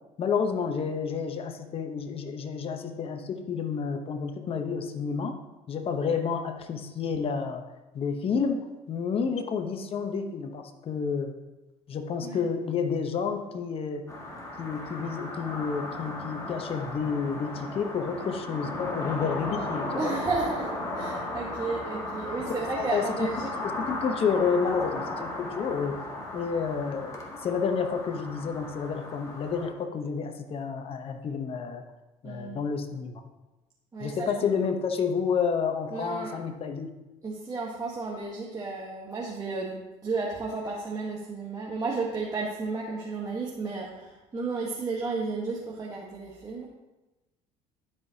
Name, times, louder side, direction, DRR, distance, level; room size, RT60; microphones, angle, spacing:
voice 1, 0.2-5.3 5.7-7.6 7.9-8.6 8.9-11.3 11.9-14.0 14.6-20.1 22.8-23.3 23.6-26.1 26.3-31.8 32.2-33.2 34.0-36.9, left 6 dB, 45° left, 6 dB, 0.8 m, -30 dB
sound 1, 14.1-29.7, left 2 dB, 25° left, 1.7 m, -36 dB
voice 2, 20.0-23.5 32.2-32.6 33.9-34.4 35.9-36.3 37.2-46.7, right 4 dB, 25° right, -3 dB, 1.3 m, -33 dB
12.0 x 4.9 x 2.8 m, 1.1 s
supercardioid pair, 90°, 14 cm